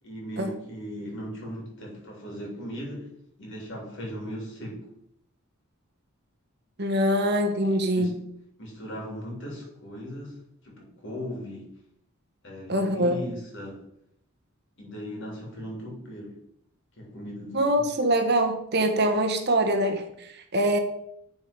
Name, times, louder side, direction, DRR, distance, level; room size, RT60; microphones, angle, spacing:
voice 1, 0.0-3.1 3.4-4.8 7.9-8.1 8.6-10.3 10.6-11.7 12.4-13.8 14.8-16.3 17.0-17.9, equal, 60° left, -2 dB, 3.3 m, -38 dB
voice 2, 6.8-8.2 12.7-13.2 17.5-20.8, right 1 dB, 50° right, 6 dB, 1.1 m, -24 dB
9.6 x 4.7 x 5.3 m, 0.75 s
head